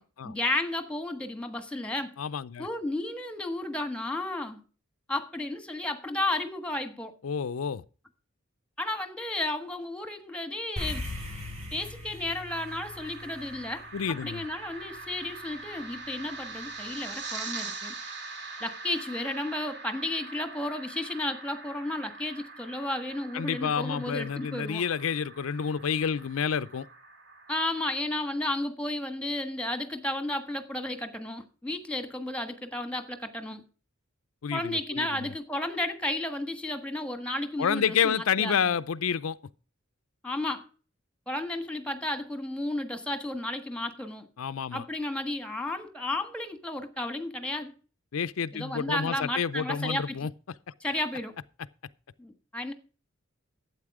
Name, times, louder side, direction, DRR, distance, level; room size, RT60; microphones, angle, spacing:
voice 1, 0.0-2.1 2.6-4.6 5.1-7.2 8.8-11.1 11.7-18.0 18.6-24.8 27.5-33.6 34.5-38.7 40.2-40.6 41.3-44.3 44.7-47.7 48.5-50.2 50.8-51.4 52.2-52.7, left 1 dB, 5° left, 1.4 m, -33 dB
voice 2, 2.2-2.7 7.2-7.8 13.9-14.4 23.3-26.9 34.4-35.3 37.6-39.4 44.4-44.8 48.1-50.3, left 7 dB, 85° left, 0.5 m, -29 dB
sound 1, 10.8-15.3, left 1 dB, 35° right, 7.5 m, -39 dB
sound 2, 12.5-27.8, right 3 dB, 55° right, 2.4 m, -43 dB
12.0 x 8.6 x 4.8 m
head